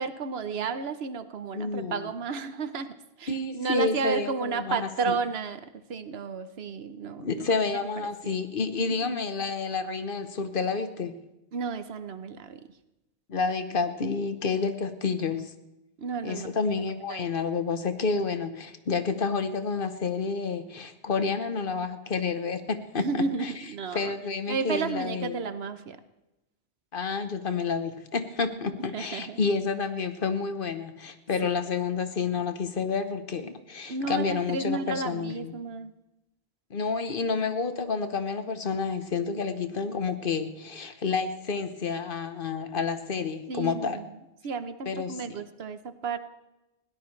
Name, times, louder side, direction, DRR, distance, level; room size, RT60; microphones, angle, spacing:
voice 1, 0.0-7.9 8.2-8.4 8.8-9.1 11.5-12.7 16.0-16.5 17.1-17.3 23.0-24.1 24.5-26.0 28.9-29.5 33.9-35.9 43.5-44.1 44.4-46.2, right 5 dB, 70° right, 11 dB, 1.1 m, -32 dB
voice 2, 1.5-2.1 3.3-5.2 7.2-11.2 13.3-15.5 16.2-23.5 23.9-25.4 26.9-35.5 36.7-44.0 44.9-45.4, left 4 dB, 55° left, 9 dB, 1.1 m, -29 dB
20.5 x 17.0 x 3.2 m, 0.94 s
omnidirectional pair, 1.1 m